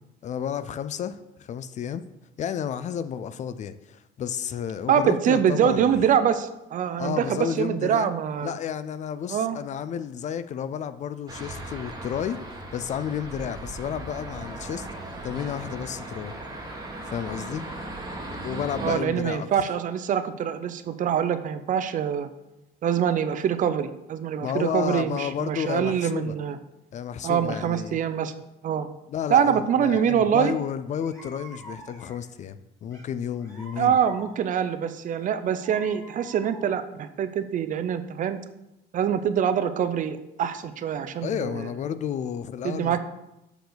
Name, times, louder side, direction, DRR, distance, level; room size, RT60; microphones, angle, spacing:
voice 1, 0.2-2.0 2.4-5.9 7.0-8.1 8.4-12.4 12.7-14.9 15.2-16.4 17.0-17.7 18.4-19.5 24.4-26.4 26.9-28.0 29.1-34.0 41.2-43.0, left 8 dB, 45° left, 13 dB, 0.4 m, -31 dB
voice 2, 4.9-8.6 9.3-9.6 18.8-22.3 22.8-26.6 27.2-28.3 28.6-28.9 29.3-30.6 33.8-38.4 38.9-41.7 42.6-43.0, right 8 dB, 50° right, 11 dB, 0.5 m, -24 dB
sound 1, 11.3-18.9, right 2 dB, 20° right, 1.6 m, -37 dB
sound 2, 30.5-30.6 31.0-32.4 32.9-34.7 35.2-37.0, right 1 dB, 20° left, 1.9 m, -47 dB
6.7 x 4.7 x 3.9 m, 0.90 s
cardioid pair, 110°, 17 cm